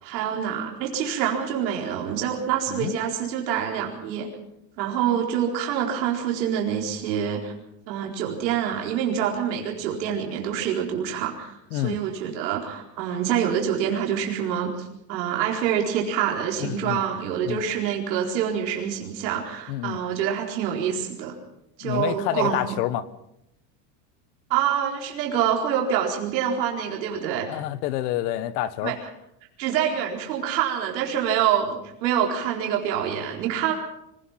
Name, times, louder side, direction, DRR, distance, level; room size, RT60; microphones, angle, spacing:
voice 1, 0.0-4.3 4.8-7.5 7.9-21.3 21.8-22.6 24.5-27.6 28.8-29.0 29.6-33.7, right 9 dB, 90° right, 0 dB, 4.4 m, -26 dB
voice 2, 16.6-17.0 17.4-17.6 19.7-20.0 21.8-23.1 27.5-28.9, left 13 dB, 65° left, 15 dB, 1.5 m, -28 dB
25.0 x 18.0 x 5.8 m, 0.82 s
supercardioid pair, 150°, 50 cm